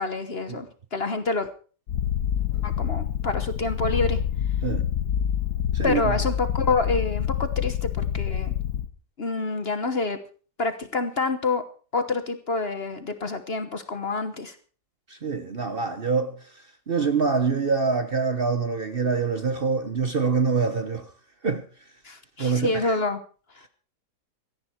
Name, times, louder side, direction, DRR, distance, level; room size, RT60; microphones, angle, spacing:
voice 1, 0.0-1.5 2.6-4.2 5.8-8.5 9.2-10.2 10.6-11.6 11.9-14.5 22.0-23.2, left 3 dB, 40° left, 1.2 m, -27 dB
Purr, 1.9-8.9, left 9 dB, 70° left, 1.4 m, -27 dB
voice 2, 5.7-6.2 15.1-16.3 16.9-21.1 21.4-21.6 22.4-23.0, right 5 dB, 40° right, 1.0 m, -25 dB
17.0 x 13.5 x 4.5 m
omnidirectional pair, 1.7 m